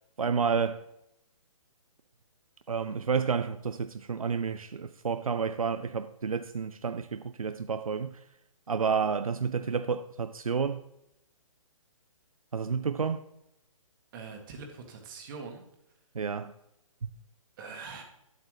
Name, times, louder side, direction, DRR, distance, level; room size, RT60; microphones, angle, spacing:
voice 1, 0.2-0.8 2.7-8.2 8.7-10.8 12.5-13.2 16.1-16.5, right 6 dB, 85° right, 0.5 m, -30 dB
voice 2, 14.1-15.6 17.6-18.0, right 4 dB, 40° right, 1.7 m, -43 dB
10.5 x 7.8 x 3.2 m
figure-of-eight pair, 135°, 18 cm